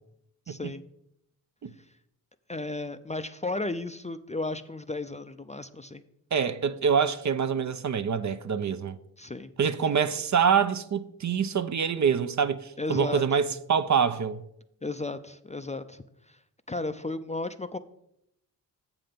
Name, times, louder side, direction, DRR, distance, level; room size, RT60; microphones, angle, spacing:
voice 1, 0.5-0.8 2.5-6.0 9.2-9.5 12.8-13.2 14.8-16.4 16.7-17.8, left 2 dB, 15° left, 0.5 m, -34 dB
voice 2, 6.3-9.0 9.6-14.4, right 6 dB, 45° right, 0.6 m, -25 dB
7.5 x 6.0 x 5.2 m
supercardioid pair, 50°, 42 cm